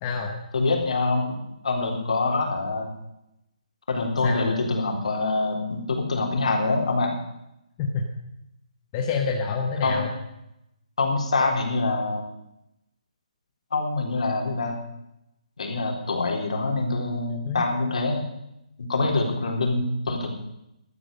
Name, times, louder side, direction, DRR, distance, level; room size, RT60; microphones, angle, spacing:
voice 1, 0.0-0.4 4.2-4.5 7.8-8.1 8.9-10.1 17.4-17.6, left 4 dB, 15° left, 0 dB, 1.1 m, -27 dB
voice 2, 0.5-2.9 3.9-7.2 9.8-10.1 11.0-12.2 13.7-14.8 15.6-18.3 18.8-20.3, left 3 dB, 60° left, 2 dB, 3.8 m, -25 dB
13.0 x 12.0 x 6.6 m, 0.85 s
hypercardioid pair, 175°, 4 cm